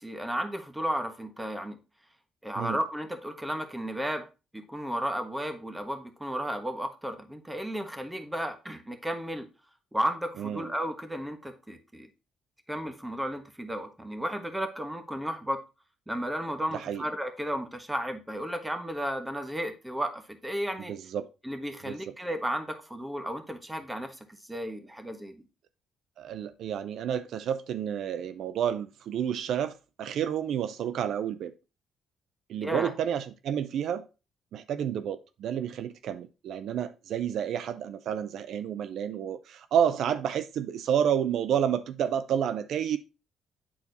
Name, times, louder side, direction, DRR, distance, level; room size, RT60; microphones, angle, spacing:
voice 1, 0.0-1.8 2.4-4.3 4.5-9.5 9.9-12.1 12.7-15.6 16.1-20.9 21.4-24.2 24.5-25.4 32.6-32.9, equal, 10° right, 1.3 m, -33 dB
voice 2, 10.4-10.7 16.7-17.0 20.9-21.3 21.8-22.0 26.2-31.5 32.5-34.1 34.5-43.0, right 9 dB, 75° right, 0.5 m, -30 dB
8.5 x 4.2 x 4.0 m
cardioid pair, 90°, 0 cm